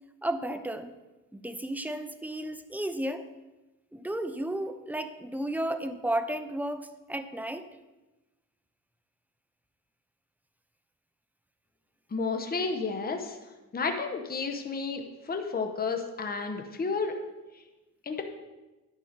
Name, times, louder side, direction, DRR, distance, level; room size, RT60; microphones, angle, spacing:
voice 1, 0.2-0.9 1.3-3.3 3.9-7.6, right 1 dB, 5° right, 9 dB, 0.5 m, -33 dB
voice 2, 12.1-13.4 13.7-17.2 18.1-18.2, left 4 dB, 25° left, 4 dB, 0.9 m, -31 dB
10.5 x 5.6 x 5.2 m, 1.1 s
cardioid pair, 125°, 35 cm